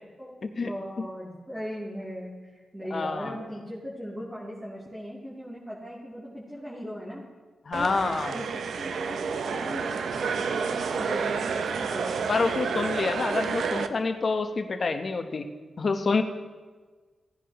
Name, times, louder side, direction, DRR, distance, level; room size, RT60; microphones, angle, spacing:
voice 1, 0.2-7.2 7.7-8.0 8.3-12.4, equal, 15° right, -7 dB, 2.9 m, -38 dB
voice 2, 2.9-3.4 7.7-8.3 12.3-15.5 15.8-16.2, left 4 dB, 55° left, 7 dB, 1.0 m, -27 dB
sound 1, 7.7-13.9, right 6 dB, 80° right, 0.6 m, -30 dB
17.0 x 10.0 x 3.1 m, 1.4 s
cardioid pair, 60°, 0 cm